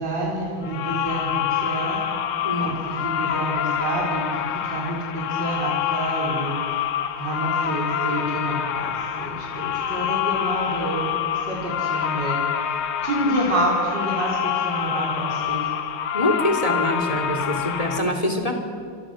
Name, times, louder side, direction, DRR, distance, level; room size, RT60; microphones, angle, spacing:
voice 1, 0.0-2.0 2.6-6.9 7.2-15.7, right 1 dB, 55° right, -3 dB, 5.2 m, -28 dB
sound 1, 0.6-18.0, left 8 dB, 80° left, 2.0 m, -26 dB
voice 2, 2.4-2.8 16.1-18.6, left 1 dB, 15° left, 4 dB, 3.0 m, -24 dB
28.5 x 26.0 x 6.5 m, 2.3 s
omnidirectional pair, 2.3 m